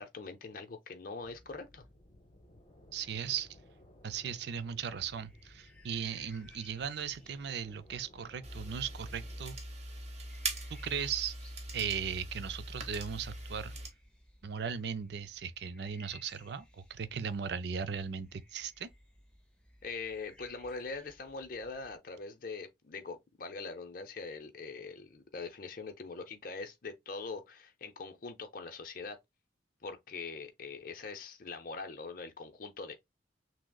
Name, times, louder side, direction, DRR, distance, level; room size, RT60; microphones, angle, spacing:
voice 1, 0.0-1.9 19.8-29.2 29.8-32.9, left 4 dB, 45° left, 0.6 m, -42 dB
sound 1, 1.2-9.4, left 1 dB, 25° left, 1.0 m, -59 dB
voice 2, 2.9-3.5 4.0-9.6 10.7-11.4 11.7-13.7 14.4-18.9, right 7 dB, 60° right, 0.4 m, -37 dB
sound 2, 4.9-22.0, left 1 dB, 5° left, 0.7 m, -60 dB
sound 3, 8.4-13.9, right 2 dB, 35° right, 0.8 m, -42 dB
6.0 x 2.0 x 2.2 m
head